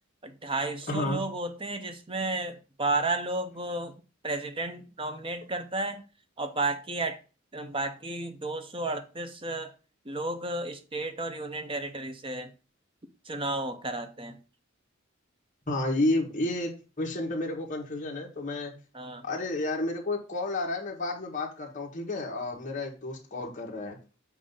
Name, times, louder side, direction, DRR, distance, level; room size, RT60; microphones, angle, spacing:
voice 1, 0.2-3.9 4.2-6.0 6.4-7.2 7.5-9.7 10.1-12.5 13.3-14.4 18.9-19.3, right 2 dB, 25° right, 0.7 m, -32 dB
voice 2, 0.9-1.2 15.7-18.7 19.2-24.0, left 2 dB, 40° left, 1.6 m, -31 dB
7.5 x 2.8 x 5.4 m
head